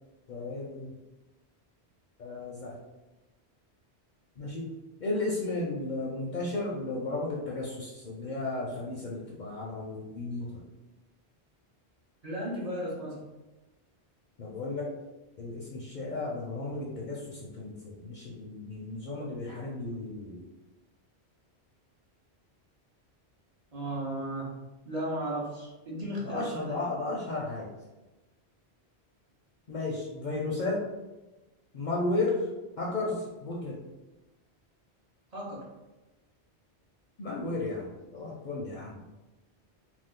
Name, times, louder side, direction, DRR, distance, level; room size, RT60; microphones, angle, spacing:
voice 1, 0.3-0.9 2.2-2.8 4.4-4.7 5.0-10.7 14.4-14.9 15.4-20.4 26.2-27.7 29.7-30.9 31.7-32.5 32.8-33.8 37.2-39.0, left 2 dB, 55° left, -3 dB, 0.5 m, -34 dB
voice 2, 12.2-13.3 23.7-24.5 24.8-26.8 35.3-35.6, right 1 dB, 40° right, -5 dB, 0.7 m, -35 dB
2.5 x 2.4 x 3.6 m, 1.1 s
omnidirectional pair, 1.1 m